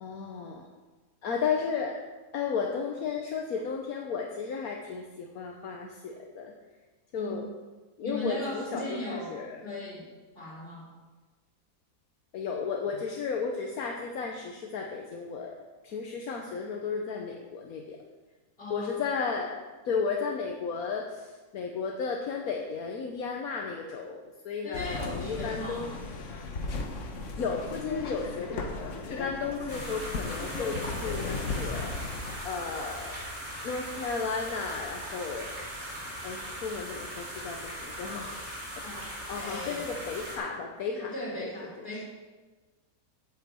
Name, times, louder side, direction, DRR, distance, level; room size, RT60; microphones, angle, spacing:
voice 1, 0.0-0.7 1.2-2.0 2.3-6.5 7.1-7.5 8.0-9.6 12.3-18.0 18.7-25.9 27.4-32.0 32.4-33.1 33.6-35.5 36.2-38.4 38.9-41.1 41.4-41.5, left 5 dB, 75° left, 1 dB, 1.4 m, -34 dB
voice 2, 7.1-7.4 8.0-10.1 10.3-10.9 18.6-18.9 24.6-26.0 38.8-39.1 39.4-39.9 41.1-42.0, left 1 dB, 40° left, -5 dB, 4.0 m, -38 dB
sound 1, 24.7-32.4, left 3 dB, 55° left, 1.4 m, -36 dB
sound 2, 29.7-40.4, equal, 60° right, 3.8 m, -39 dB
8.9 x 7.2 x 7.7 m, 1.3 s
omnidirectional pair, 1.6 m